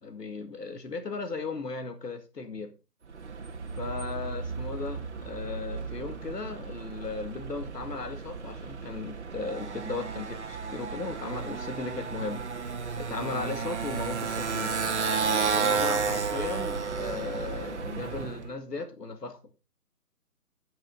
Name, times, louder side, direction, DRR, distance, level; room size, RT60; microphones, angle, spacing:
voice 1, 0.0-2.7 3.8-12.4 13.0-14.7 15.5-19.4, left 4 dB, 85° left, 2.3 m, -36 dB
Motorcycle, 3.1-18.5, right 5 dB, 45° right, 1.6 m, -33 dB
10.0 x 9.2 x 3.9 m
hypercardioid pair, 165°, 47 cm